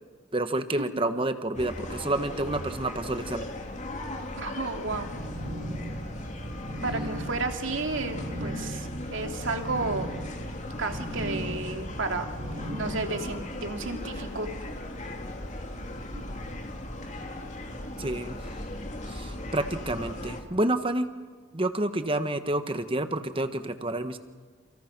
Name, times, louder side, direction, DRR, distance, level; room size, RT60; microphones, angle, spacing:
voice 1, 0.3-3.5 18.0-18.4 19.1-21.1 21.5-24.2, right 1 dB, 25° right, 9 dB, 1.4 m, -29 dB
sound 1, 1.5-20.4, left 1 dB, 35° left, 2.6 m, -38 dB
voice 2, 4.4-5.1 6.8-10.1 10.8-12.3 12.8-14.6 16.1-16.2, right 3 dB, 65° right, 4 dB, 2.7 m, -32 dB
sound 2, 4.9-13.4, equal, 90° right, 3.4 m, -37 dB
29.5 x 29.5 x 6.1 m, 1.5 s
head